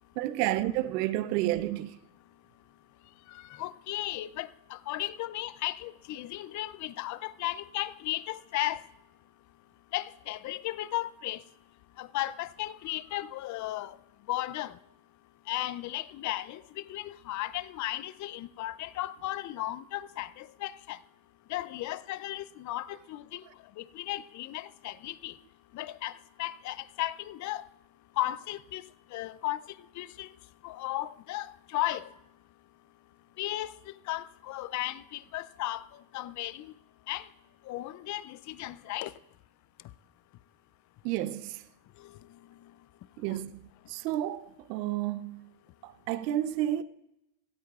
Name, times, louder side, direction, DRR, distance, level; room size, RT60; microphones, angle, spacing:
voice 1, 0.2-2.0 41.0-41.6 43.2-43.5 43.9-45.5 45.8-46.8, right 14 dB, 80° right, 0.7 m, -30 dB
voice 2, 3.3-8.8 9.9-11.4 12.0-14.0 14.3-14.7 15.5-21.0 21.5-23.4 23.8-25.4 25.7-26.1 26.4-27.6 28.2-29.6 30.0-30.3 30.6-32.1 33.4-33.7 34.1-35.8 36.1-36.7 37.1-37.3 37.7-39.1 43.3-43.4, left 15 dB, 40° left, 0.5 m, -35 dB
17.0 x 13.5 x 2.4 m
supercardioid pair, 90°, 48 cm